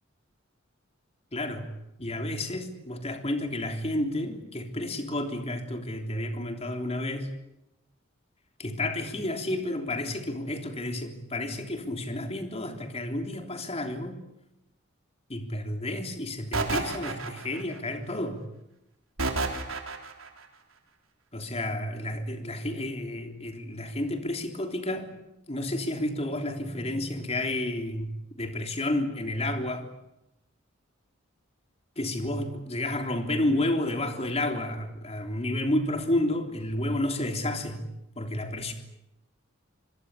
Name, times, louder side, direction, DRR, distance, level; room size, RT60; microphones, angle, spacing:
voice 1, 1.3-1.7 2.0-7.3 8.6-14.2 15.3-18.4 21.3-25.1 25.5-28.1 28.4-29.8 32.0-37.9 38.2-38.7, left 1 dB, 30° left, 5 dB, 3.4 m, -31 dB
sound 1, 16.5-17.8 19.2-20.3, right 3 dB, 85° right, 3.7 m, -30 dB
26.5 x 22.0 x 8.4 m, 0.85 s
head